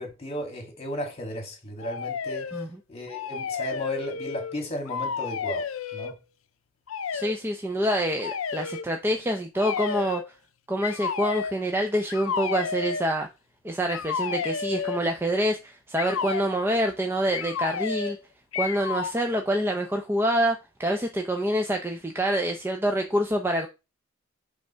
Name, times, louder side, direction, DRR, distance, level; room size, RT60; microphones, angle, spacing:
voice 1, 0.0-2.5 2.9-5.7 5.9-6.2, equal, 30° left, 2.0 m, -34 dB
sound 1, 1.8-2.7 3.1-4.6 4.8-6.1 6.9-7.4 8.2-8.8 9.5-10.3 10.8-11.6 12.1-13.0 13.9-15.1 16.0-16.5 17.3-18.2 18.5-19.2, left 6 dB, 75° left, 0.5 m, -31 dB
voice 2, 7.1-10.2 10.7-13.3 13.6-18.2 18.6-23.7, equal, 10° right, 0.5 m, -26 dB
5.2 x 3.4 x 5.5 m
head